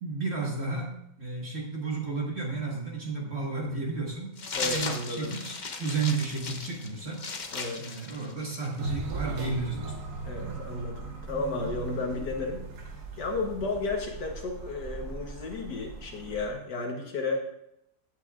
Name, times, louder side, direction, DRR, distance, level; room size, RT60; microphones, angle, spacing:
voice 1, 0.0-4.4 4.6-7.3 7.8-9.9, right 4 dB, 40° right, -2 dB, 1.8 m, -32 dB
sound 1, 4.4-8.8, left 4 dB, 40° left, 0.7 m, -36 dB
voice 2, 4.6-5.3 7.5-8.0 10.3-12.6 13.2-17.4, left 3 dB, 80° left, 1 dB, 1.7 m, -33 dB
sound 2, 8.8-16.5, right 3 dB, 70° right, 1.8 m, -39 dB
15.0 x 8.3 x 2.4 m, 0.78 s
omnidirectional pair, 1.8 m